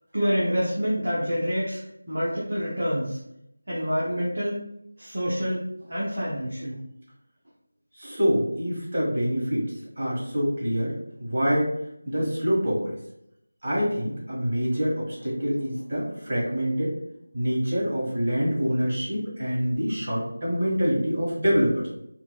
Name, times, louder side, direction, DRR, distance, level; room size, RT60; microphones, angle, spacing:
voice 1, 0.1-1.8 2.1-3.2 3.7-4.6 5.0-6.8, equal, 55° right, -6 dB, 0.8 m, -27 dB
voice 2, 8.0-11.7 12.0-12.9 13.6-16.9 17.3-21.9, equal, 35° right, -6 dB, 1.4 m, -26 dB
4.4 x 2.2 x 2.3 m, 0.78 s
figure-of-eight pair, 165°, 0 cm